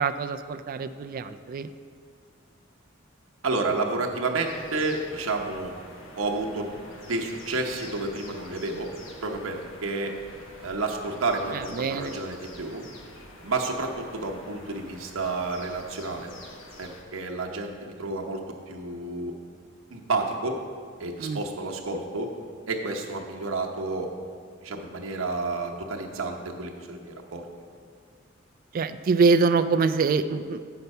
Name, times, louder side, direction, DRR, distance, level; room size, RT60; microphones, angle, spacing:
voice 1, 0.0-1.7 11.5-12.1 21.2-21.4 28.7-30.6, right 4 dB, 45° right, 10 dB, 0.3 m, -24 dB
voice 2, 3.4-5.7 6.2-6.7 7.1-8.9 9.2-10.1 10.6-12.8 13.4-16.3 16.8-18.4 18.7-19.3 19.9-20.6 21.0-22.3 22.7-24.1 24.6-27.4, right 3 dB, 80° right, 1 dB, 0.9 m, -30 dB
sound 1, 4.5-17.0, left 1 dB, 70° left, 1.2 m, -47 dB
7.9 x 5.8 x 5.4 m, 2.1 s
head